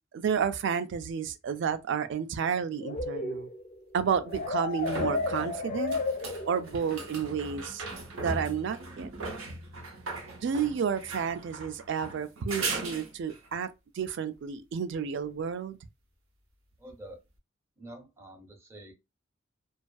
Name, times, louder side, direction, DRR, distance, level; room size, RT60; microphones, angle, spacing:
voice 1, 0.1-3.5 3.9-6.0 6.5-7.8 8.2-9.1 10.4-15.8, right 7 dB, 60° right, 0.3 m, -31 dB
sound 1, 2.8-6.9, left 3 dB, 40° left, 0.4 m, -33 dB
sound 2, 3.0-3.1 4.4-13.5 16.9-17.0, right 2 dB, 85° right, 0.7 m, -39 dB
voice 2, 16.8-17.2 17.8-18.9, right 1 dB, 15° right, 0.6 m, -47 dB
2.5 x 2.3 x 2.2 m
head